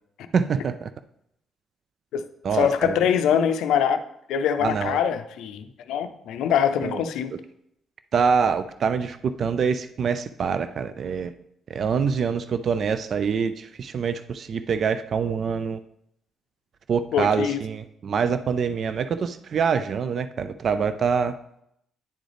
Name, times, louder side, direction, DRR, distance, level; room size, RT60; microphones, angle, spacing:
voice 1, 0.3-0.9 2.4-3.0 4.6-5.0 6.8-7.0 8.1-11.3 11.7-15.8 16.9-21.4, right 6 dB, 55° right, 11 dB, 0.3 m, -25 dB
voice 2, 2.5-4.0 4.3-7.4 17.1-17.6, left 8 dB, 85° left, 9 dB, 0.4 m, -23 dB
9.9 x 3.9 x 3.3 m, 0.77 s
cardioid pair, 90°, 0 cm